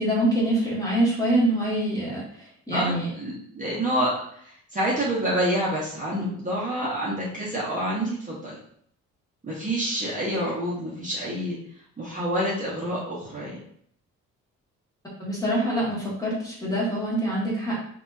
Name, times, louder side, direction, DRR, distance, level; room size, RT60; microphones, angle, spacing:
voice 1, 0.0-2.2 2.7-3.1 15.2-17.8, right 1 dB, 10° left, -7 dB, 1.3 m, -24 dB
voice 2, 2.7-8.6 9.4-11.6 12.0-13.6, equal, 25° right, -6 dB, 0.9 m, -28 dB
2.9 x 2.7 x 2.3 m, 0.65 s
cardioid pair, 90°, 30 cm